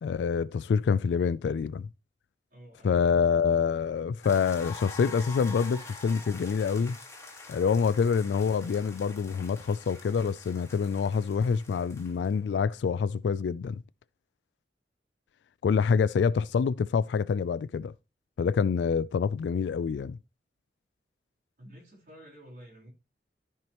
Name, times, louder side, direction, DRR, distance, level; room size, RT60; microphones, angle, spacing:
voice 1, 0.0-1.9 2.8-7.0 7.5-13.8 15.6-17.9 18.4-20.2, left 6 dB, 75° left, 0.3 m, -26 dB
voice 2, 2.5-3.4 21.6-22.9, equal, 45° right, 4.1 m, -51 dB
sound 1, 4.2-12.3, left 3 dB, 15° left, 1.5 m, -46 dB
13.5 x 4.7 x 3.0 m
head